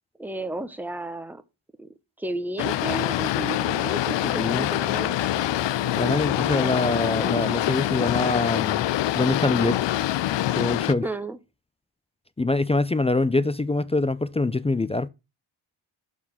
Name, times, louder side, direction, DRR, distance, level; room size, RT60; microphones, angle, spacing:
voice 1, 0.2-1.4 1.8-1.9 2.2-5.2 11.0-11.4, right 2 dB, 5° right, 1.0 m, -33 dB
Boat Water vehicle, 2.6-10.9, left 14 dB, 60° left, 0.5 m, -25 dB
sound 1, 2.6-8.4, right 3 dB, 40° right, 1.9 m, -43 dB
voice 2, 4.4-4.7 5.9-8.8 9.1-9.8 10.5-11.0 12.4-15.1, left 2 dB, 15° left, 0.4 m, -24 dB
6.3 x 5.7 x 6.0 m
supercardioid pair, 45°, 49 cm